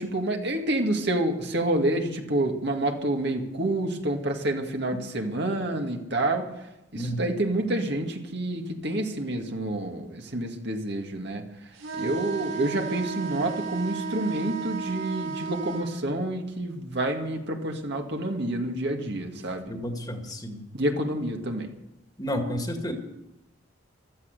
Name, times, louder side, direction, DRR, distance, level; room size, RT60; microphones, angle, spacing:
voice 1, 0.0-6.7 6.9-19.7 20.7-21.7, right 1 dB, 60° right, 3 dB, 2.1 m, -28 dB
sound 1, 11.7-15.9, right 5 dB, 85° right, 6.2 m, -34 dB
voice 2, 19.7-20.6 22.2-22.9, equal, 20° left, 4 dB, 2.0 m, -31 dB
15.5 x 13.5 x 6.8 m, 0.90 s
head